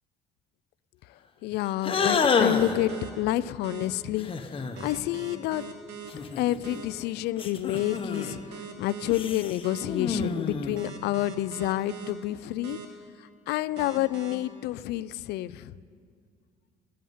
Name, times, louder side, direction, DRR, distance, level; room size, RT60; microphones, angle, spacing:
voice 1, 1.4-5.7 6.4-8.4 8.8-12.8 13.5-15.7, left 14 dB, 80° left, 18 dB, 0.4 m, -29 dB
sound 1, 1.8-2.8 4.2-4.8 6.1-6.8 7.4-8.4 9.1-10.9, left 5 dB, 30° left, 0.9 m, -28 dB
sound 2, 2.5-3.1 3.6-3.9 4.8-6.1 6.6-6.8 7.8-9.1 9.6-9.9 10.8-12.1 12.6-12.9 13.8-14.3, right 6 dB, 80° right, 1.4 m, -41 dB
11.0 x 8.7 x 9.4 m, 2.2 s
cardioid pair, 110°, 17 cm